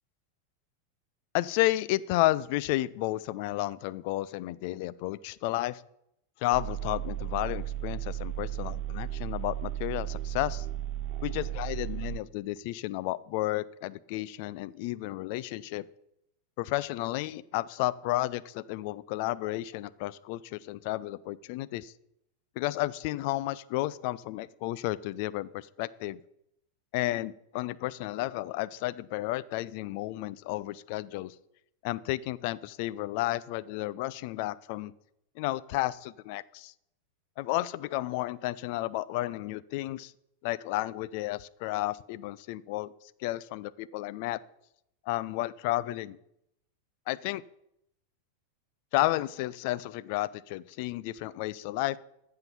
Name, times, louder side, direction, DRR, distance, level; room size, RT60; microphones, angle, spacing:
voice 1, 1.3-5.8 6.4-10.7 11.2-15.8 16.6-21.9 22.6-26.2 26.9-31.3 31.8-34.9 35.4-36.7 37.4-40.1 40.4-42.9 43.2-44.4 45.1-46.2 47.1-47.4 48.9-52.0, left 17 dB, 45° left, 19 dB, 0.4 m, -32 dB
sound 1, 6.5-12.2, right 12 dB, 40° right, 0.5 m, -35 dB
14.5 x 5.7 x 6.9 m, 0.80 s
figure-of-eight pair, 90°, 0 cm